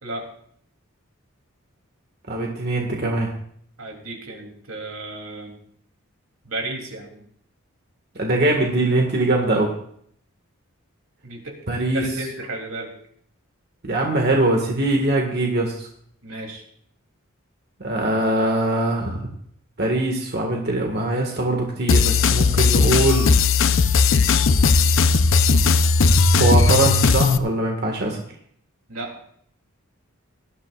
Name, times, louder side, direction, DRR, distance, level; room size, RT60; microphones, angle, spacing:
voice 1, 0.0-0.3 3.8-5.6 6.4-7.2 11.2-12.9 16.2-16.6 28.9-29.2, right 2 dB, 85° right, 2 dB, 3.0 m, -33 dB
voice 2, 2.3-3.3 8.2-9.7 11.7-12.1 13.8-15.9 17.8-19.2 19.8-23.3 26.4-28.2, right 2 dB, 50° right, 1 dB, 1.7 m, -22 dB
sound 1, 21.9-27.4, left 4 dB, 60° left, 0.6 m, -17 dB
18.5 x 12.5 x 2.4 m, 0.65 s
head